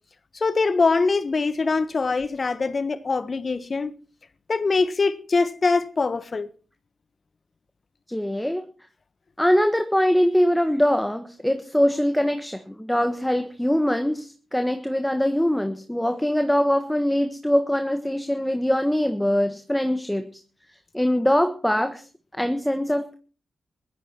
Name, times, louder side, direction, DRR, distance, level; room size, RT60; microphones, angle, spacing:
voice 1, 0.3-3.9 4.5-6.5, left 4 dB, 50° left, 1.4 m, -23 dB
voice 2, 8.1-8.6 9.4-20.3 20.9-22.1 22.3-23.1, equal, 5° left, 1.5 m, -22 dB
16.0 x 13.5 x 4.6 m
supercardioid pair, 50°, 0 cm